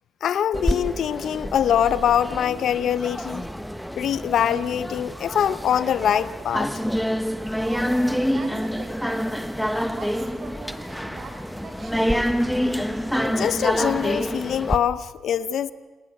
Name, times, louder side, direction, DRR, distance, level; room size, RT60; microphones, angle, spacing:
voice 1, 0.2-3.5 4.0-6.7 13.2-15.7, left 9 dB, 65° left, 15 dB, 0.8 m, -23 dB
sound 1, 0.5-14.8, equal, ahead, 1.2 m, -27 dB
voice 2, 7.6-9.4 9.9-12.3, right 4 dB, 50° right, 7 dB, 4.5 m, -42 dB
26.5 x 19.0 x 6.7 m, 1.3 s
cardioid pair, 90°, 0 cm